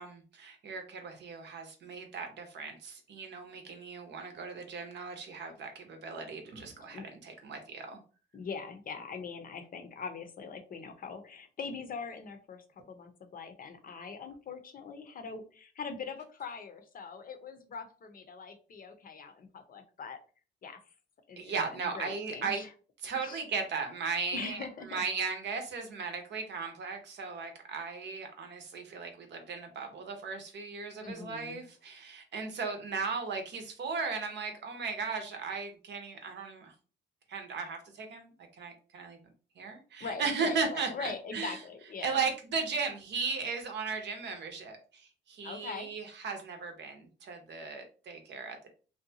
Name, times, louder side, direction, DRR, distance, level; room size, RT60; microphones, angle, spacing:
voice 1, 0.0-8.0 21.4-22.6 23.0-36.7 37.3-39.2 39.6-41.6 42.0-48.7, right 5 dB, 60° right, 5 dB, 0.7 m, -37 dB
voice 2, 8.3-20.2 20.6-20.8 21.3-22.7 23.1-23.4 24.3-25.0 31.0-31.6 40.0-42.2 45.4-45.9, left 5 dB, 45° left, 6 dB, 0.6 m, -42 dB
2.6 x 2.2 x 2.7 m, 0.37 s
cardioid pair, 90°, 20 cm